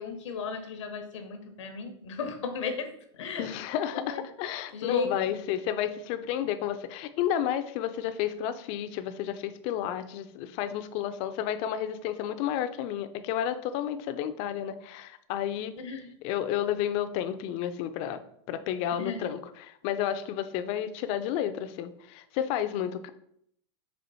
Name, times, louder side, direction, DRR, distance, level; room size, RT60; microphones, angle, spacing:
voice 1, 0.0-3.5 3.9-4.2 4.7-5.1 15.8-16.1 19.0-19.2, left 5 dB, 85° left, 7 dB, 0.8 m, -35 dB
voice 2, 3.4-15.7 16.2-18.2 18.5-23.1, left 10 dB, 40° left, 11 dB, 0.4 m, -31 dB
4.4 x 3.0 x 4.0 m, 0.71 s
supercardioid pair, 140°, 15 cm